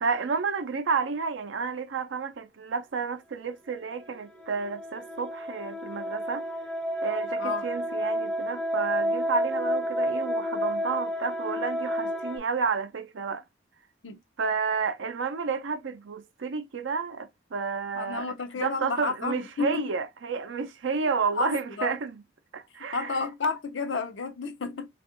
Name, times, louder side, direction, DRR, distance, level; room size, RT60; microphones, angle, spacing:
voice 1, 0.0-6.4 7.0-13.4 14.4-22.2 22.5-23.2, right 5 dB, 80° right, 0.5 m, -31 dB
sound 1, 4.0-12.4, equal, 5° left, 0.5 m, -30 dB
voice 2, 17.9-19.8 21.0-22.0 22.9-24.9, left 4 dB, 80° left, 0.7 m, -31 dB
3.4 x 2.4 x 2.6 m
head